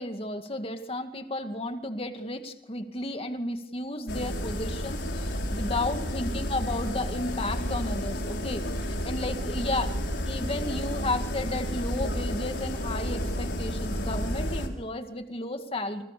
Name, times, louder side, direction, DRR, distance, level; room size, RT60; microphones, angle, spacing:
voice 1, 0.0-10.0 10.3-16.0, left 2 dB, 35° left, 7 dB, 2.2 m, -33 dB
sound 1, 4.1-14.7, equal, 80° left, 5.1 m, -31 dB
29.5 x 25.5 x 6.9 m, 0.81 s
head